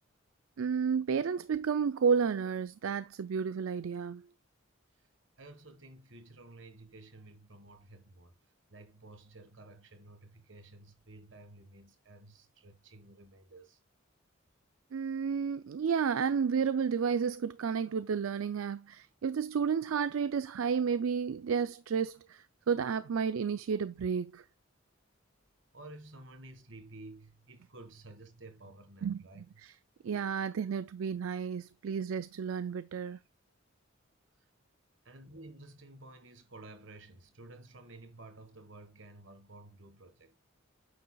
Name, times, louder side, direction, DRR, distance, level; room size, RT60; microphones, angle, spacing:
voice 1, 0.6-4.2 14.9-24.4 29.0-29.7 30.0-33.2, right 6 dB, 85° right, 0.4 m, -31 dB
voice 2, 5.4-8.3 8.7-13.8 25.7-29.6 34.4-34.5 35.0-40.4, right 2 dB, 65° right, 1.5 m, -52 dB
9.2 x 6.7 x 2.3 m
head